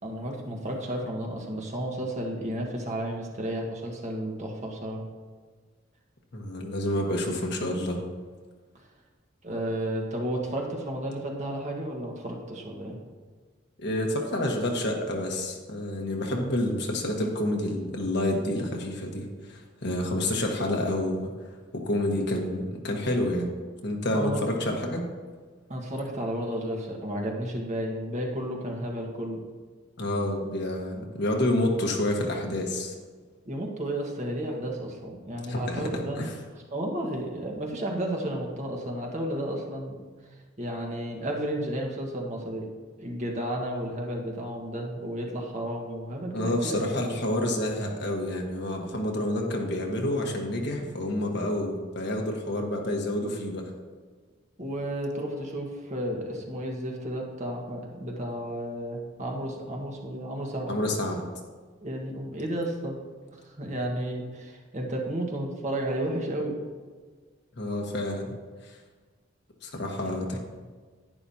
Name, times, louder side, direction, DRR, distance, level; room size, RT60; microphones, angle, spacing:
voice 1, 0.0-5.1 9.4-13.0 24.1-24.5 25.7-29.4 33.4-36.2 36.7-39.9 40.6-42.7 43.0-46.8 54.6-60.7 61.8-63.0 63.3-66.6, right 1 dB, 40° right, 0 dB, 1.5 m, -32 dB
voice 2, 6.3-8.0 13.8-21.3 21.7-23.5 23.8-25.0 30.0-32.9 35.5-36.3 46.3-53.7 60.7-61.2 67.6-68.3 68.6-68.7 69.6-70.4, left 1 dB, 60° left, 1 dB, 1.4 m, -28 dB
10.5 x 10.0 x 2.8 m, 1.5 s
head